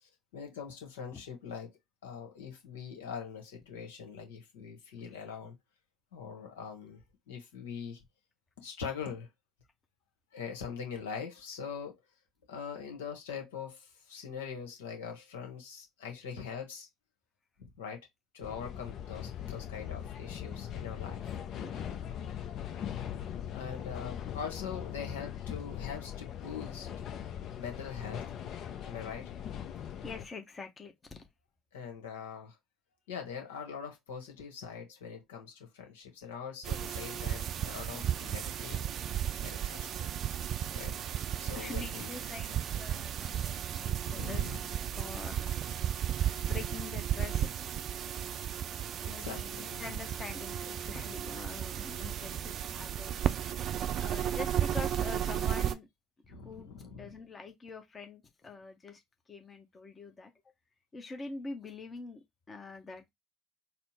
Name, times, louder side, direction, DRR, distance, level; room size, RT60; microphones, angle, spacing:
voice 1, 0.0-5.6 6.1-7.0 7.3-8.0 8.6-9.3 10.3-12.0 12.5-16.9 17.8-18.1 18.3-21.2 23.5-26.9 27.6-28.4 28.8-29.4 31.7-32.6 33.1-38.9 39.3-40.1 40.7-41.0 41.4-42.2 44.0-44.8 46.6-46.7 49.0-50.2 56.3-57.2, left 6 dB, 80° left, 1.2 m, -43 dB
sound 1, 18.4-30.3, left 9 dB, 55° left, 0.7 m, -40 dB
voice 2, 21.6-22.1 30.0-31.3 41.5-44.6 45.0-45.5 46.1-47.5 48.2-48.3 49.1-53.6 54.0-55.9 56.2-59.0 59.3-60.3 60.9-62.2 62.5-63.0, left 4 dB, 30° left, 0.9 m, -45 dB
sound 2, 36.6-55.7, right 10 dB, 50° right, 0.5 m, -34 dB
4.3 x 2.1 x 4.1 m
hypercardioid pair, 65°, 0 cm